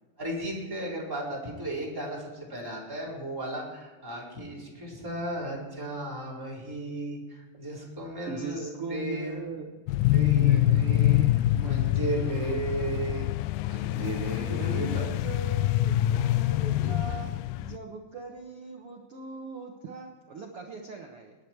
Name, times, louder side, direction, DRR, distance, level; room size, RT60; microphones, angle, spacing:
voice 1, 0.2-9.5 10.1-13.3 13.6-15.1, right 1 dB, 5° right, -5 dB, 4.1 m, -35 dB
voice 2, 8.3-12.6 14.5-21.4, right 4 dB, 65° right, 1 dB, 1.4 m, -40 dB
sound 1, 9.9-17.8, left 14 dB, 85° left, 2.0 m, -25 dB
19.5 x 10.5 x 4.6 m, 1.3 s
omnidirectional pair, 4.3 m